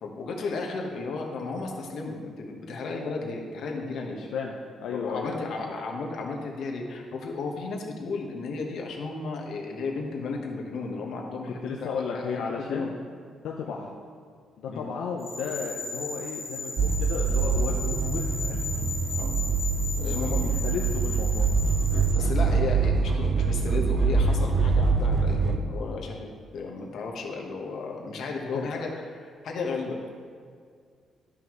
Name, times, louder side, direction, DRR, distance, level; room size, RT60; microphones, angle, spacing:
voice 1, 0.0-4.2 4.9-12.9 13.6-13.8 14.7-14.9 19.2-19.3 20.0-20.5 22.1-26.3 26.5-29.0 29.4-30.1, left 3 dB, 60° left, 0 dB, 1.2 m, -34 dB
voice 2, 4.2-5.8 11.6-12.9 13.4-13.9 14.6-18.6 20.2-21.5 28.5-28.9, left 5 dB, 85° left, -1 dB, 0.6 m, -34 dB
sound 1, 15.2-22.1, left 3 dB, 5° left, 2.3 m, -36 dB
sound 2, 16.8-25.6, right 4 dB, 45° right, 0.5 m, -24 dB
12.5 x 5.6 x 3.1 m, 2.1 s
cardioid pair, 155°, 0 cm